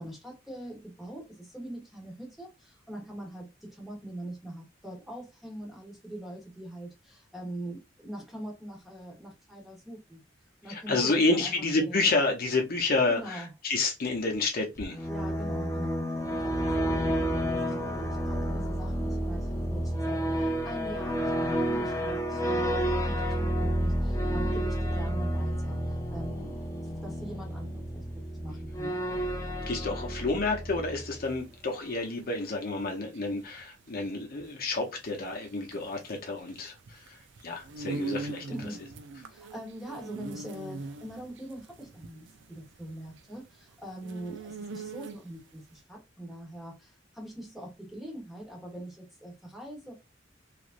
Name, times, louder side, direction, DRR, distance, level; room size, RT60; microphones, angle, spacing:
voice 1, 0.0-10.2 10.6-12.1 13.1-13.5 15.0-22.4 22.8-26.5 26.8-28.9 38.5-38.9 39.2-49.9, right 1 dB, ahead, 1.1 m, -43 dB
voice 2, 10.7-15.1 29.7-37.2 37.4-38.4, left 3 dB, 50° left, 0.7 m, -29 dB
sound 1, 14.8-31.4, equal, 15° left, 0.6 m, -30 dB
sound 2, 31.3-45.5, right 3 dB, 70° right, 0.4 m, -42 dB
3.1 x 2.4 x 2.5 m
head